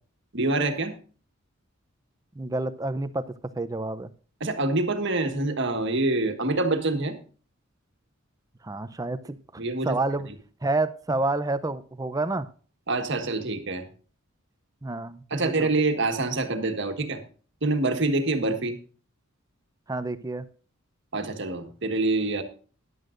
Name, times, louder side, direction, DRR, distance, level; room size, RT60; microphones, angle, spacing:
voice 1, 0.3-1.0 4.4-7.1 9.6-10.0 12.9-13.9 15.3-17.2 17.6-18.7 21.1-22.4, right 2 dB, 55° right, 5 dB, 1.6 m, -26 dB
voice 2, 2.3-3.3 3.6-4.1 8.6-9.4 9.8-10.3 10.6-12.5 14.8-15.7 19.9-20.5, right 2 dB, 15° right, 13 dB, 0.6 m, -29 dB
14.5 x 11.0 x 2.5 m, 0.40 s
head